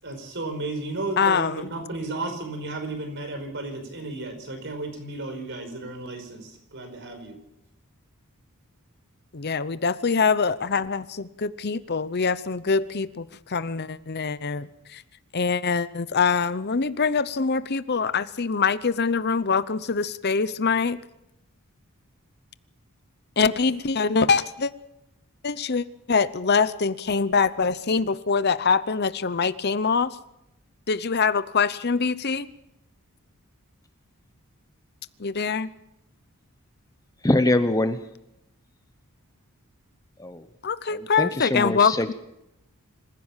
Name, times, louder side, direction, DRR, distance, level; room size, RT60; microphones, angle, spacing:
voice 1, 0.0-7.4, right 2 dB, 55° right, 6 dB, 5.1 m, -33 dB
voice 2, 1.2-1.7 9.3-15.0 15.3-21.0 23.4-24.7 25.4-30.1 30.9-32.5 35.2-35.7 40.6-41.9, left 5 dB, 45° left, 15 dB, 0.7 m, -24 dB
voice 3, 37.2-38.0 40.2-40.5 40.9-42.1, left 1 dB, 15° left, 10 dB, 0.8 m, -24 dB
26.5 x 15.5 x 7.4 m, 0.86 s
head